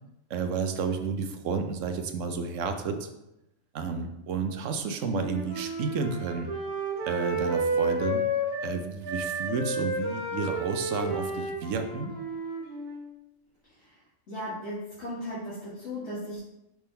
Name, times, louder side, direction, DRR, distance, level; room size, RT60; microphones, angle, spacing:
voice 1, 0.3-3.1 3.7-6.5 7.0-8.2 8.6-12.1, right 5 dB, 75° right, 6 dB, 1.1 m, -31 dB
Wind instrument woodwind instrument, 5.0-8.7 9.0-13.1, right 1 dB, 50° right, 1.5 m, -31 dB
voice 2, 14.3-16.4, left 1 dB, 55° left, -9 dB, 1.9 m, -36 dB
6.1 x 3.6 x 4.3 m, 0.89 s
omnidirectional pair, 1.4 m